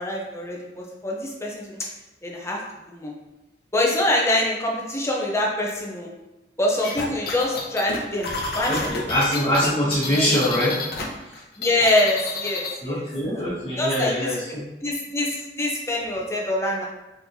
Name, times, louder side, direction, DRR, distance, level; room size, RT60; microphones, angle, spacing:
voice 1, 0.0-1.8 2.2-2.6 2.9-3.1 3.7-6.1 6.6-9.0 9.8-10.4 11.6-13.0 13.8-14.4 14.8-16.9, left 1 dB, 15° left, -2 dB, 0.7 m, -25 dB
sound 1, 6.8-11.0 11.3-12.8, left 3 dB, 60° left, 0.8 m, -30 dB
voice 2, 8.7-10.8 12.8-14.6, equal, 30° left, -10 dB, 1.5 m, -23 dB
4.3 x 4.1 x 2.8 m, 1.0 s
head